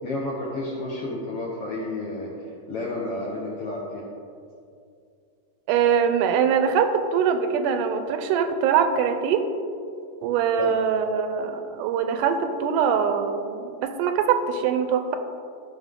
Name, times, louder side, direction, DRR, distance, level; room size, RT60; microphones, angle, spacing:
voice 1, 0.0-2.3 2.7-4.1 10.6-10.7, left 2 dB, 65° left, -4 dB, 1.6 m, -31 dB
voice 2, 5.7-9.4 10.2-15.2, right 7 dB, 85° right, 8 dB, 2.2 m, -23 dB
13.0 x 5.6 x 3.7 m, 2.4 s
omnidirectional pair, 3.7 m